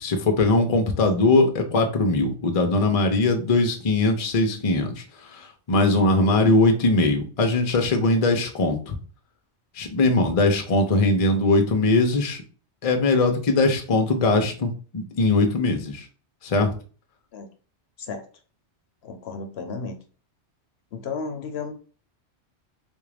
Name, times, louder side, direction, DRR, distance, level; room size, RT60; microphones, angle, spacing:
voice 1, 0.0-9.0 9.7-12.4 12.8-16.1 16.4-16.7, left 2 dB, 40° left, 5 dB, 0.6 m, -21 dB
voice 2, 19.0-19.9 20.9-21.7, left 4 dB, 70° left, 6 dB, 0.8 m, -33 dB
3.7 x 2.4 x 3.3 m, 0.39 s
omnidirectional pair, 1.2 m